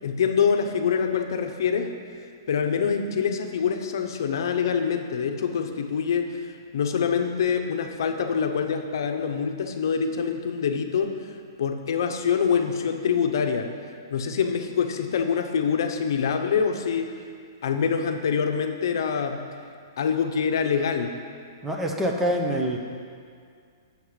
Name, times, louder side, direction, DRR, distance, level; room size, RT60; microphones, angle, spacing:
voice 1, 0.0-1.9 2.5-6.4 6.7-11.3 11.6-13.7 14.1-17.1 17.6-19.4 20.0-21.1, left 6 dB, 65° left, 5 dB, 0.7 m, -25 dB
voice 2, 21.6-22.8, equal, 5° right, 1 dB, 0.6 m, -25 dB
7.6 x 7.1 x 4.8 m, 2.2 s
hypercardioid pair, 155°, 2 cm